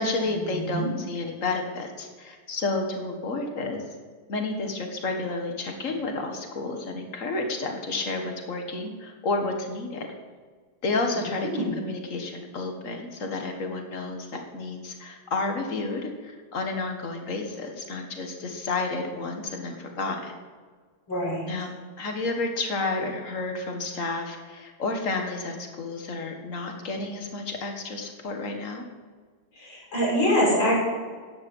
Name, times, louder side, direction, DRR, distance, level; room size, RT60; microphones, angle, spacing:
voice 1, 0.0-3.8 4.3-10.1 10.8-11.5 11.8-20.3 21.5-21.7 22.0-28.8, left 3 dB, 40° left, 3 dB, 1.8 m, -31 dB
voice 2, 0.5-0.9 11.2-11.3 11.5-11.7 21.1-21.5 29.6-30.8, equal, 80° left, -5 dB, 6.0 m, -24 dB
14.5 x 10.0 x 5.5 m, 1.5 s
omnidirectional pair, 2.1 m